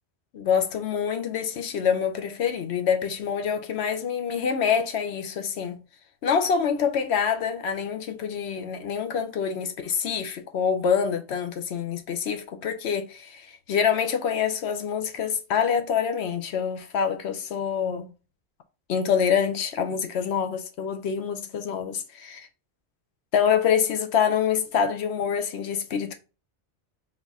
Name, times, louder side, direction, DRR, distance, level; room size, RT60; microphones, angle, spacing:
voice 1, 0.3-5.7 6.2-18.1 18.9-22.5 23.3-26.1, left 7 dB, 70° left, 0.9 m, -26 dB
3.9 x 2.4 x 3.9 m
omnidirectional pair, 1.2 m